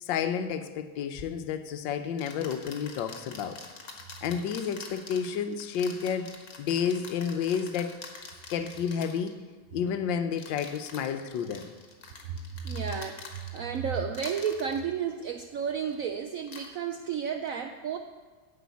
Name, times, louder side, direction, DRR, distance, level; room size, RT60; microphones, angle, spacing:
voice 1, 0.0-3.6 4.2-7.9 8.5-9.4 9.7-11.7, left 7 dB, 75° left, 10 dB, 1.4 m, -31 dB
sound 1, 1.1-1.3 2.2-9.3 10.3-13.8 14.1-14.8 15.9-16.1 16.4-16.7, left 4 dB, 50° left, 1.7 m, -45 dB
voice 2, 12.6-18.0, right 7 dB, 85° right, 6 dB, 0.7 m, -32 dB
10.0 x 5.7 x 8.2 m, 1.5 s
omnidirectional pair, 2.1 m